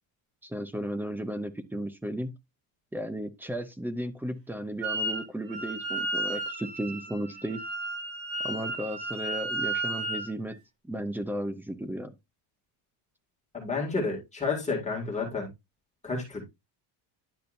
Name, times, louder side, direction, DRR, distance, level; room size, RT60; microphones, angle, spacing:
voice 1, 0.4-2.4 2.9-7.6 8.4-10.6 10.8-12.2, equal, 5° right, 0.4 m, -34 dB
Wind instrument woodwind instrument, 4.8-5.2 5.5-10.3, right 2 dB, 65° right, 2.7 m, -33 dB
voice 2, 13.5-15.5 16.0-16.5, left 4 dB, 15° left, 2.1 m, -30 dB
10.5 x 5.4 x 2.5 m
cardioid pair, 165°, 46 cm